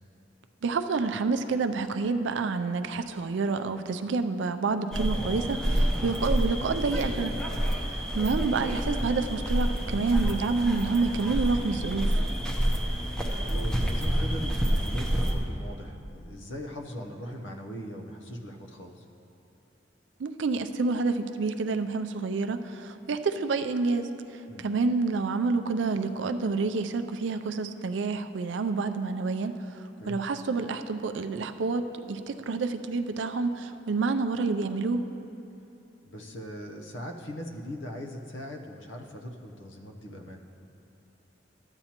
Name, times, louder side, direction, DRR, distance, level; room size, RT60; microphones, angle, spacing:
voice 1, 0.6-7.4 7.9-12.2 20.2-35.0, right 4 dB, 75° right, 9 dB, 0.4 m, -28 dB
sound 1, 4.9-15.4, equal, 5° left, 0.7 m, -28 dB
voice 2, 13.4-19.0 24.5-24.6 30.0-30.2 36.0-40.4, equal, 85° left, 2 dB, 0.8 m, -40 dB
13.0 x 8.9 x 2.9 m, 2.9 s
head